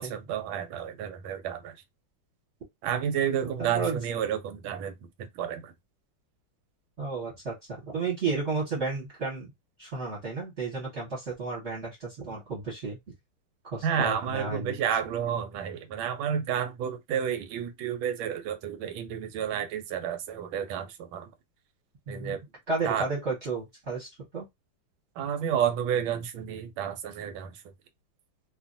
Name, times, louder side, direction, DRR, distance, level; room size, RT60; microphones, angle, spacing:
voice 1, 0.0-1.7 2.8-5.7 13.8-21.3 22.1-22.4 22.8-23.1 25.2-27.6, right 8 dB, 85° right, 1.4 m, -31 dB
voice 2, 3.4-4.0 7.0-7.5 7.8-9.5 9.8-13.0 13.6-14.7 22.1-22.4 22.7-24.4, right 4 dB, 40° right, 1.3 m, -32 dB
2.9 x 2.5 x 2.5 m
omnidirectional pair, 2.2 m